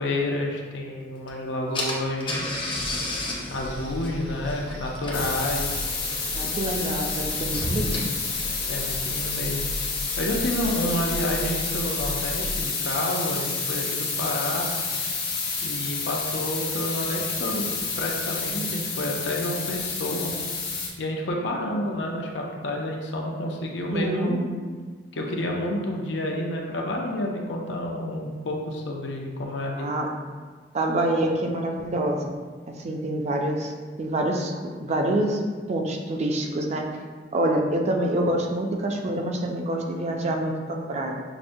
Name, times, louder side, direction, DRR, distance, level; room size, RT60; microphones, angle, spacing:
voice 1, 0.0-2.5 3.5-5.9 8.7-9.7 10.2-14.7 15.6-20.3 21.0-24.5 25.1-29.9, left 1 dB, 80° left, 0 dB, 0.6 m, -29 dB
Car / Engine, 1.3-1.4 1.7-9.2, left 1 dB, 30° left, 0.6 m, -33 dB
sound 1, 3.6-12.6, equal, 80° right, 0.8 m, -37 dB
sound 2, 5.1-20.9, left 4 dB, 60° left, 0.9 m, -29 dB
voice 2, 6.4-8.0 23.9-24.4 29.8-30.1 30.7-32.3 32.8-33.7 34.0-34.5 34.8-35.4 35.7-36.8 37.3-41.2, right 1 dB, 40° right, 1 dB, 0.4 m, -26 dB
5.8 x 2.1 x 2.6 m, 1.5 s
head